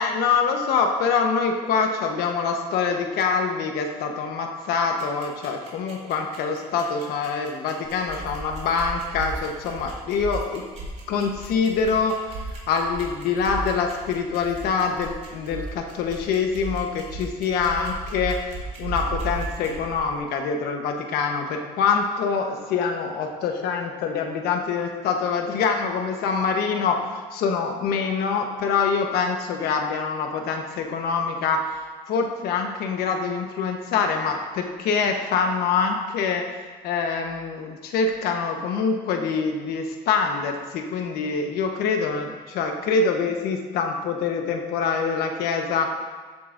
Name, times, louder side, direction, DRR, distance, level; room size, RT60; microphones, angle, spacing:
voice 1, 0.0-10.6 11.1-45.9, left 5 dB, 85° left, 3 dB, 1.1 m, -25 dB
sound 1, 5.0-19.7, right 5 dB, 45° right, 2.9 m, -48 dB
sound 2, 7.8-20.2, right 2 dB, 65° right, 1.3 m, -36 dB
13.0 x 7.8 x 2.6 m, 1.5 s
cardioid pair, 135°, 16 cm